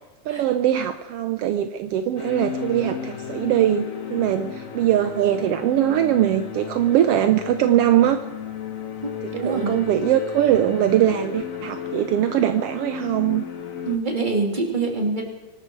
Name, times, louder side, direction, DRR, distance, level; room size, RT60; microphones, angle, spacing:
voice 1, 0.3-8.2 9.2-13.4, right 11 dB, 75° right, 8 dB, 1.4 m, -21 dB
sound 1, 2.2-14.0, left 8 dB, 50° left, 1.0 m, -34 dB
voice 2, 9.0-9.8 13.9-15.2, right 3 dB, 15° right, 1 dB, 2.8 m, -25 dB
24.0 x 12.5 x 4.6 m, 1.1 s
omnidirectional pair, 3.5 m